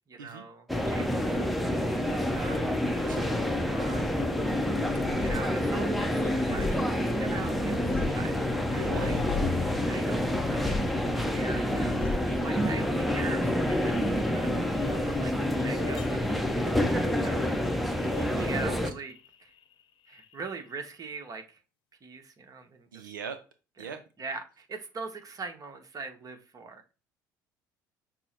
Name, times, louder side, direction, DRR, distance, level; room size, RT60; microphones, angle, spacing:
voice 1, 0.1-1.5 1.8-3.0 3.7-4.3 5.2-8.3 8.6-9.1 9.8-10.2 10.5-10.8 11.2-14.5 14.8-17.5 18.4-19.5 20.1-21.6 22.0-23.1 23.8-26.9, right 4 dB, 35° right, 5 dB, 1.0 m, -42 dB
sound 1, 0.7-18.9, left 1 dB, ahead, 0.7 m, -28 dB
voice 2, 3.0-3.4 8.7-9.2 18.0-18.8 22.9-23.4 23.8-24.0, right 6 dB, 85° right, 9 dB, 0.4 m, -40 dB
sound 2, 4.9-19.8 20.1-20.9, left 5 dB, 55° left, 0.8 m, -39 dB
5.9 x 2.0 x 4.4 m, 0.33 s
hypercardioid pair, 60°, 11 cm